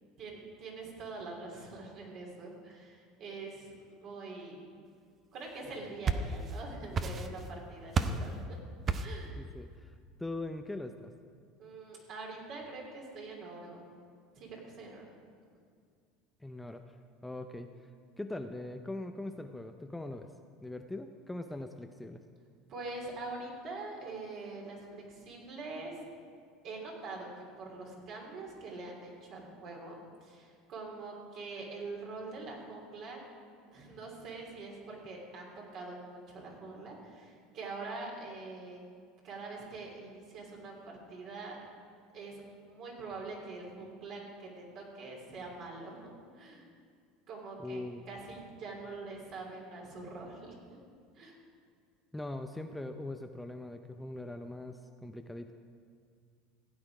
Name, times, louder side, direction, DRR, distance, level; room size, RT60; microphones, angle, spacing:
voice 1, 0.2-4.6 5.3-8.4 9.0-9.3 11.6-13.8 14.3-15.1 22.7-26.0 26.6-29.9 30.2-33.2 33.7-38.8 39.2-41.6 42.1-46.7 47.3-47.8 48.1-50.5 51.1-51.4, right 3 dB, 50° right, -1 dB, 3.5 m, -44 dB
sound 1, 5.7-6.6 6.9-7.5 7.9-8.3 8.9-9.3, right 4 dB, 35° right, 0.7 m, -32 dB
voice 2, 9.4-11.1 16.4-17.0 17.2-17.7 18.2-20.3 20.6-22.2 47.6-48.0 52.1-55.5, left 2 dB, 5° left, 6 dB, 0.6 m, -41 dB
15.5 x 8.9 x 4.9 m, 2.1 s
supercardioid pair, 105°, 0 cm